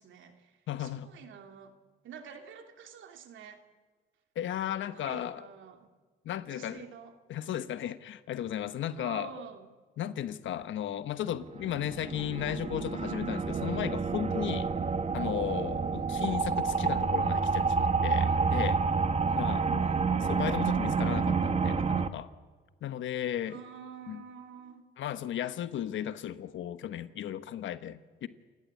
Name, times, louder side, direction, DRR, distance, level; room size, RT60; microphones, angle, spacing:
voice 1, 0.0-1.8 2.0-3.6 4.9-5.9 6.5-7.1 8.9-9.7 19.2-20.3 23.5-24.9, right 7 dB, 75° right, 5 dB, 2.9 m, -48 dB
voice 2, 0.7-1.1 4.3-5.4 6.2-6.8 7.3-9.3 10.0-14.7 15.1-18.8 19.3-19.8 20.3-22.3 22.8-23.6 24.1-24.2 25.0-28.3, left 11 dB, 75° left, 12 dB, 1.3 m, -35 dB
sound 1, 11.4-22.1, right 5 dB, 35° right, 1.4 m, -29 dB
28.5 x 16.5 x 8.5 m, 1.5 s
cardioid pair, 90°, 20 cm